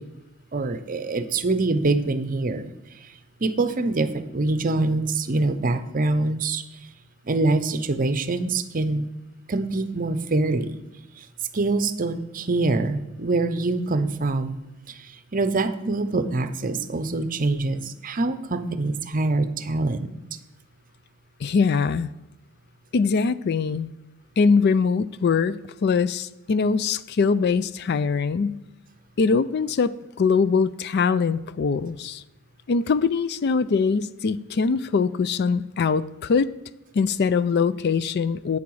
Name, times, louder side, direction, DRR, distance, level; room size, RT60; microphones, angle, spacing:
voice 1, 0.5-2.7 3.0-3.1 3.4-6.6 7.2-9.1 9.5-10.8 11.2-11.3 11.5-14.6 14.9-20.1, right 2 dB, 40° right, 0.7 m, -25 dB
voice 2, 21.4-22.1 22.9-23.9 24.4-28.6 29.2-32.2 32.7-36.5 36.9-38.6, left 5 dB, 50° left, 0.4 m, -22 dB
11.0 x 8.5 x 4.7 m
head